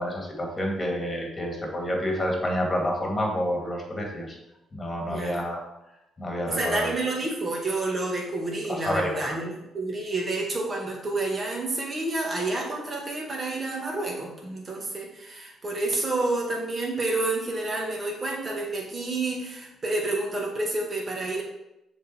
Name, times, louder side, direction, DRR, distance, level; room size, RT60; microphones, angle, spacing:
voice 1, 0.0-4.4 4.7-5.6 6.2-6.9 8.7-9.4, equal, 25° left, 0 dB, 2.0 m, -29 dB
voice 2, 5.1-5.4 6.5-21.4, right 2 dB, 30° right, -2 dB, 1.9 m, -29 dB
7.2 x 4.0 x 4.4 m, 0.90 s
cardioid pair, 90°, 0 cm